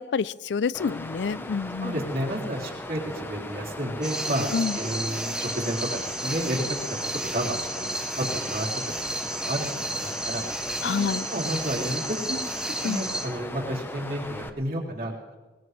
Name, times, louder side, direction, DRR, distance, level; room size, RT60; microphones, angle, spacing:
voice 1, 0.0-2.0 4.5-4.8 10.8-11.2 12.8-13.0, left 5 dB, 80° left, 19 dB, 0.4 m, -27 dB
Water, 0.7-14.5, left 1 dB, 10° left, 0.8 m, -38 dB
voice 2, 1.8-6.6 6.9-8.7 9.3-10.4 10.8-10.9 11.3-12.0 12.3-12.4 12.8-15.1, right 1 dB, 55° right, -2 dB, 3.2 m, -31 dB
sound 1, 4.0-13.3, right 1 dB, 5° right, 1.5 m, -32 dB
21.5 x 20.0 x 3.3 m, 1.3 s
head